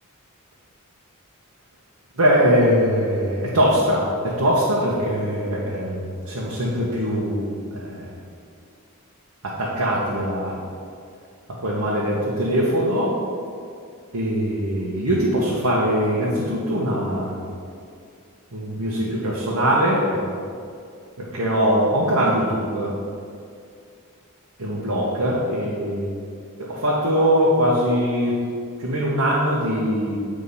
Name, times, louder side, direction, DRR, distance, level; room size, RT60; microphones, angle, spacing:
voice 1, 2.2-7.5 7.7-8.1 9.4-10.6 11.5-13.1 14.1-17.5 18.5-20.3 21.2-23.0 24.6-26.1 26.6-28.4 28.8-30.2, equal, 75° right, -5 dB, 1.0 m, -22 dB
8.3 x 3.7 x 5.4 m, 2.3 s
head